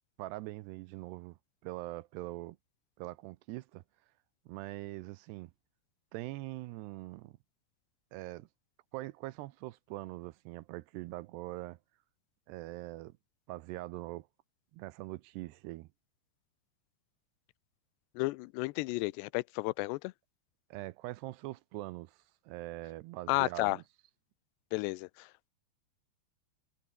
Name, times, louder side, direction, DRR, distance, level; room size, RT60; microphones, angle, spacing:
voice 1, 0.2-2.6 3.0-3.8 4.5-5.5 6.1-7.4 8.1-8.5 8.9-11.8 12.5-13.1 13.5-14.3 14.7-15.9 20.7-23.8, right 18 dB, 85° right, 2.8 m, -43 dB
voice 2, 18.2-20.1 23.3-23.8 24.7-25.5, left 23 dB, 85° left, 2.7 m, -32 dB
omnidirectional pair, 4.9 m